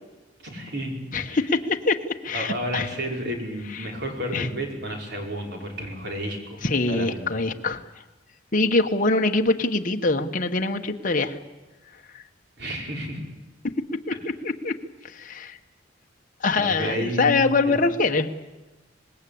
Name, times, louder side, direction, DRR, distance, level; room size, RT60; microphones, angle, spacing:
voice 1, 0.4-1.0 1.3-1.4 2.3-6.6 6.9-7.2 12.6-13.2 16.6-17.8, equal, 55° right, 1 dB, 5.2 m, -31 dB
voice 2, 1.1-2.0 2.2-2.9 3.8-3.9 4.3-4.5 6.6-7.8 8.5-11.4 12.1-12.2 14.1-14.2 14.4-14.7 15.0-15.6 16.4-18.3, left 3 dB, 45° left, 4 dB, 1.3 m, -23 dB
25.0 x 20.0 x 8.7 m, 1.1 s
head